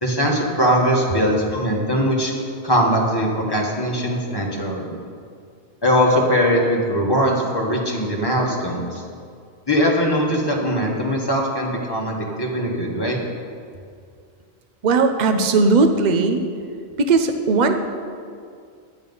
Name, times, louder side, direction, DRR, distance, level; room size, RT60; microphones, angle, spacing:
voice 1, 0.0-2.3 2.6-5.0 5.8-9.0 9.7-13.2, equal, 20° left, -2 dB, 1.6 m, -21 dB
voice 2, 14.8-16.4 17.0-17.7, right 3 dB, 40° right, 6 dB, 0.8 m, -17 dB
10.0 x 8.9 x 5.5 m, 2.3 s
omnidirectional pair, 1.3 m